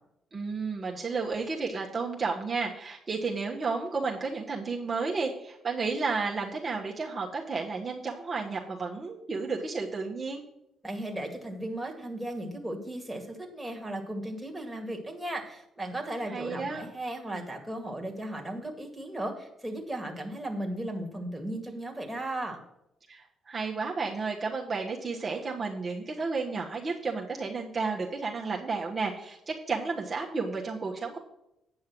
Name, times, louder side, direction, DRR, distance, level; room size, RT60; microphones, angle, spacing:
voice 1, 0.3-10.4 16.3-16.8 23.1-31.2, right 4 dB, 35° right, -1 dB, 1.3 m, -32 dB
voice 2, 10.8-22.6, right 1 dB, 5° right, 0 dB, 2.2 m, -36 dB
9.0 x 5.5 x 6.0 m, 0.85 s
cardioid pair, 90°, 0 cm